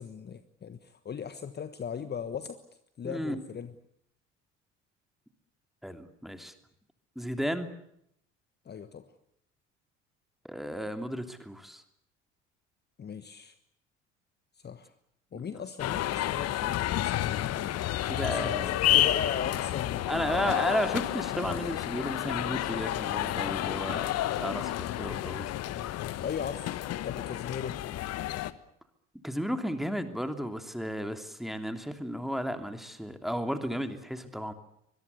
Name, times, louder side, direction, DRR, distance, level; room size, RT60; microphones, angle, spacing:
voice 1, 0.0-2.6 3.0-3.7 8.6-9.1 13.0-13.6 14.5-14.9 15.3-17.8 18.2-20.5 25.6-26.7 27.0-27.8, left 7 dB, 30° left, 12 dB, 1.4 m, -38 dB
voice 2, 3.0-3.4 5.8-6.5 7.2-7.7 10.4-11.8 15.3-15.4 18.0-18.8 20.1-25.5 29.2-34.5, equal, ahead, 7 dB, 2.9 m, -33 dB
sound 1, 15.8-28.5, left 13 dB, 45° left, 1.3 m, -30 dB
24.5 x 22.0 x 8.2 m, 0.74 s
figure-of-eight pair, 60°, 36 cm